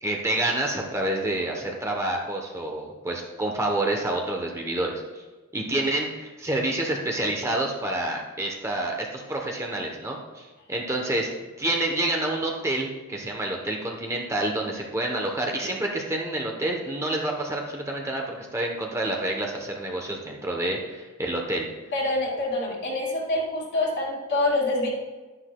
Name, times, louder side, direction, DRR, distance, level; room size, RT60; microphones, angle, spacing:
voice 1, 0.0-5.2 5.5-11.3 11.6-21.7, right 1 dB, 15° right, 0 dB, 0.9 m, -28 dB
voice 2, 21.9-24.9, left 2 dB, 55° left, -3 dB, 2.5 m, -26 dB
11.5 x 10.0 x 2.3 m, 1.3 s
head